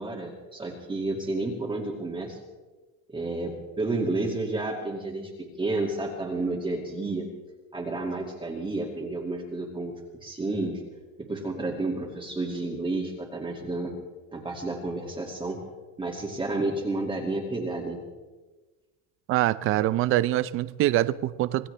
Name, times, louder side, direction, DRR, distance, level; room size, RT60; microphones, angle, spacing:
voice 1, 0.0-2.4 3.1-5.3 5.6-7.2 7.7-9.9 10.2-10.8 11.2-13.9 14.3-15.6 16.0-18.0, right 2 dB, 15° right, -2 dB, 2.2 m, -31 dB
voice 2, 19.3-21.7, right 14 dB, 35° right, 16 dB, 0.6 m, -24 dB
26.0 x 16.0 x 3.4 m, 1.2 s
cardioid pair, 145°, 38 cm